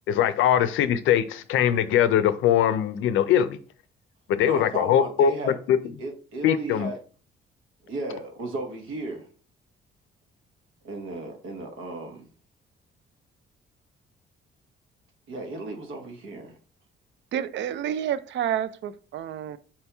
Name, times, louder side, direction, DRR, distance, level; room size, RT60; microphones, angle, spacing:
voice 1, 0.1-3.6 4.3-5.8 6.4-6.9, left 10 dB, 85° left, 0.5 m, -21 dB
voice 2, 4.4-5.5 6.0-7.0 7.9-9.3 10.8-12.3 15.3-16.6, right 2 dB, 85° right, 1.2 m, -34 dB
voice 3, 17.3-19.6, right 10 dB, 65° right, 0.4 m, -29 dB
4.3 x 2.9 x 3.4 m
cardioid pair, 90°, 20 cm